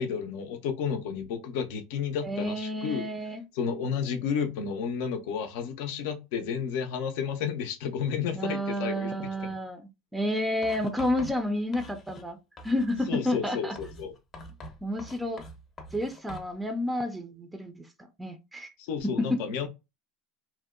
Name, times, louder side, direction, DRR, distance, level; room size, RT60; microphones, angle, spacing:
voice 1, 0.0-3.0 3.5-9.1 9.5-9.6 13.1-14.1 18.8-19.7, left 7 dB, 70° left, 0.5 m, -31 dB
voice 2, 2.2-3.4 8.3-9.8 10.1-12.4 12.6-13.7 14.8-15.4 15.9-17.8 18.2-18.7 19.2-19.4, left 1 dB, 10° right, 0.4 m, -30 dB
Writing, 10.6-12.3 12.6-13.1 13.8-16.5, left 1 dB, 35° left, 0.7 m, -45 dB
2.7 x 2.0 x 2.4 m
hypercardioid pair, 90°, 0 cm